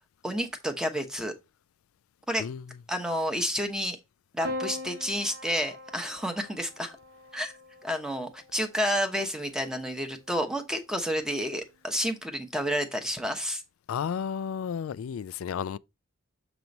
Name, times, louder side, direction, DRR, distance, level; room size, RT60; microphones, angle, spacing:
voice 1, 0.2-1.3 2.3-2.5 2.9-4.0 4.3-7.0 7.3-7.5 7.8-13.6, equal, 5° right, 0.9 m, -30 dB
Piano, 4.4-8.9 10.1-10.8, left 1 dB, 80° right, 1.5 m, -41 dB
voice 2, 13.9-15.8, left 7 dB, 85° left, 0.3 m, -32 dB
6.9 x 3.0 x 5.2 m
head